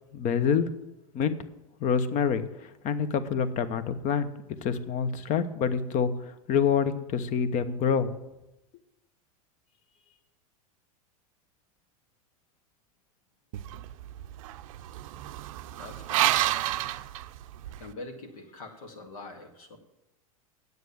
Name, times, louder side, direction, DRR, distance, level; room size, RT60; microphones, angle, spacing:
voice 1, 0.1-0.7 1.1-1.4 1.8-4.3 4.6-6.1 6.5-8.1, left 7 dB, 40° left, 13 dB, 1.0 m, -26 dB
sound 1, 13.5-17.9, right 15 dB, 65° right, 0.5 m, -30 dB
voice 2, 15.8-16.8 17.8-19.8, left 2 dB, 75° left, 4 dB, 2.1 m, -44 dB
9.5 x 8.1 x 7.0 m, 0.98 s
hypercardioid pair, 95°, 19 cm